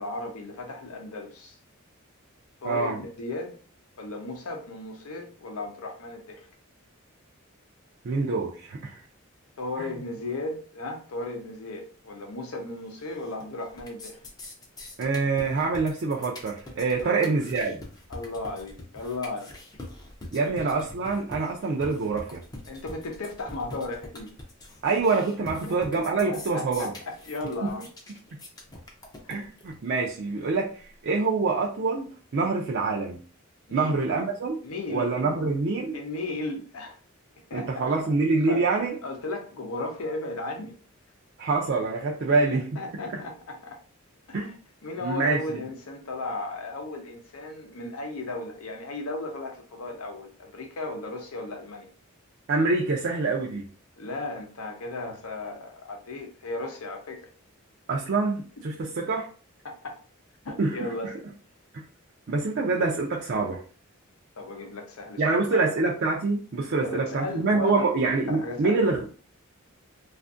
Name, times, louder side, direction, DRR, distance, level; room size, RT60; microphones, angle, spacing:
voice 1, 0.0-1.6 2.6-3.6 4.0-6.5 9.6-14.2 17.0-17.1 18.1-19.5 20.4-20.6 22.7-24.3 25.6-25.8 26.3-27.9 33.7-34.0 34.6-35.1 35.9-37.0 37.5-38.0 38.4-38.7 39.0-40.7 42.3-42.4 42.7-43.8 44.3-44.5 44.8-51.9 54.0-57.3 59.6-60.0 60.4-61.1 64.4-65.6 66.8-67.9 68.3-68.7, left 2 dB, 85° left, 3 dB, 0.7 m, -35 dB
voice 2, 2.6-3.0 8.0-9.0 9.8-10.0 15.0-17.8 20.3-22.4 24.8-26.9 27.6-27.7 29.3-33.2 33.7-34.6 34.9-36.0 37.5-39.0 41.4-42.7 44.3-44.5 45.0-45.6 52.5-53.7 57.9-59.3 60.6-60.9 61.7-61.8 62.3-63.6 65.2-69.0, right 3 dB, 55° right, -2 dB, 0.4 m, -26 dB
sound 1, 13.0-13.4 13.7-29.7, left 1 dB, 20° left, 0.5 m, -44 dB
2.5 x 2.4 x 2.4 m, 0.39 s
head